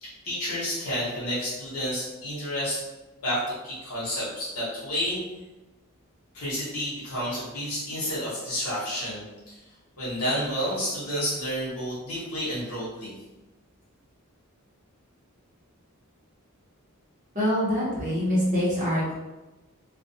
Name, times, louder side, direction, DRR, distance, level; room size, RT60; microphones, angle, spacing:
voice 1, 0.0-2.8 3.2-5.2 6.3-9.6 10.0-13.1, equal, 90° left, -9 dB, 0.9 m, -30 dB
voice 2, 17.3-19.1, equal, 35° right, -6 dB, 0.8 m, -25 dB
2.3 x 2.2 x 2.6 m, 1.1 s
head